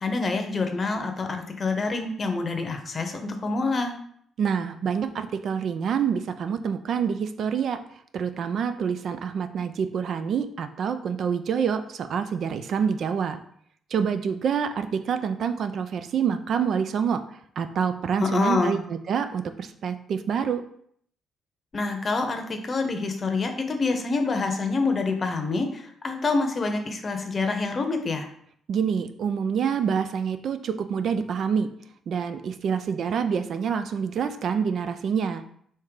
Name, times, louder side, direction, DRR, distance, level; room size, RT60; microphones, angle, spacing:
voice 1, 0.0-3.9 18.2-18.7 21.7-28.3, left 3 dB, 35° left, 5 dB, 0.7 m, -26 dB
voice 2, 4.4-7.8 8.1-13.4 13.9-17.2 17.6-20.6 28.7-31.7 32.1-35.4, right 7 dB, 65° right, 9 dB, 0.4 m, -27 dB
3.6 x 2.8 x 4.7 m, 0.64 s
cardioid pair, 90°, 0 cm